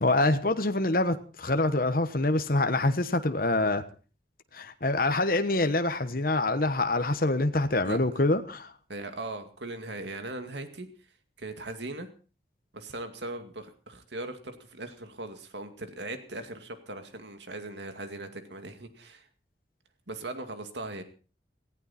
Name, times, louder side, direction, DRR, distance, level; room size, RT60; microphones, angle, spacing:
voice 1, 0.0-3.8 4.5-8.7, left 2 dB, 50° left, 8 dB, 1.2 m, -25 dB
voice 2, 7.8-8.3 8.9-11.1 11.4-12.1 12.7-19.3 20.1-21.0, right 2 dB, 80° right, 7 dB, 2.3 m, -39 dB
18.0 x 16.0 x 4.3 m, 0.36 s
head